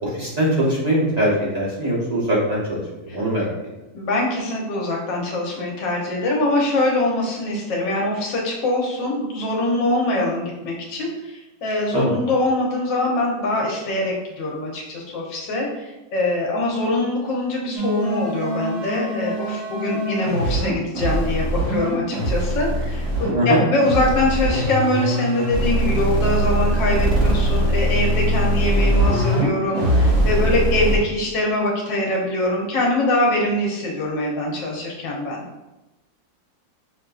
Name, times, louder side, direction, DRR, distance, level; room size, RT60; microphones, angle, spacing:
voice 1, 0.0-3.5 11.9-12.2 23.3-23.6, right 1 dB, 65° right, -6 dB, 0.4 m, -21 dB
voice 2, 3.9-35.4, left 1 dB, 75° left, -2 dB, 1.5 m, -23 dB
sound 1, 17.8-23.3 23.8-29.5 29.7-31.0, right 1 dB, 45° right, 1.9 m, -21 dB
6.0 x 2.6 x 2.3 m, 1.0 s
omnidirectional pair, 2.0 m